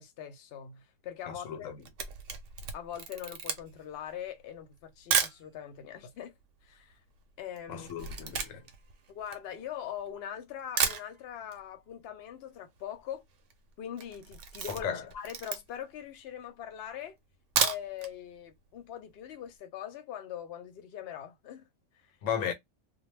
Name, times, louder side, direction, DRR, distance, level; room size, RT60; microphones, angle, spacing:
voice 1, 0.0-1.7 2.7-6.3 6.6-7.0 7.4-7.9 9.1-13.2 13.8-14.9 15.1-17.2 17.6-21.7 22.0-22.1, left 10 dB, 60° left, 0.8 m, -42 dB
voice 2, 1.3-1.8 7.7-8.7 14.7-15.0 22.2-22.5, left 8 dB, 90° left, 1.0 m, -35 dB
Camera, 1.6-5.4 6.1-6.2 6.4-10.1 10.5-10.6 10.8-11.6 11.9-12.0 12.3-12.4 12.5-13.0 13.3-13.5 13.9-15.9 16.4-16.5 17.3-18.1 18.5-18.6 18.9-19.0, right 7 dB, 75° right, 0.9 m, -33 dB
2.2 x 2.1 x 3.1 m
omnidirectional pair, 1.3 m